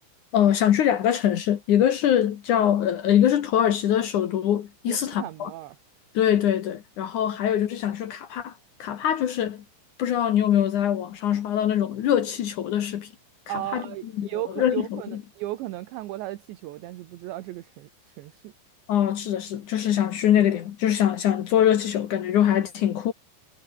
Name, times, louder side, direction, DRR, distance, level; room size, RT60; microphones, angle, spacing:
voice 1, 0.3-5.5 6.1-8.5 8.8-9.6 10.0-13.1 13.7-13.8 14.2-14.3 14.6-15.0 18.9-23.1, left 10 dB, 80° left, 1.7 m, -23 dB
voice 2, 4.9-5.8 13.5-18.5, right 15 dB, 70° right, 3.0 m, -35 dB
omnidirectional pair, 6.0 m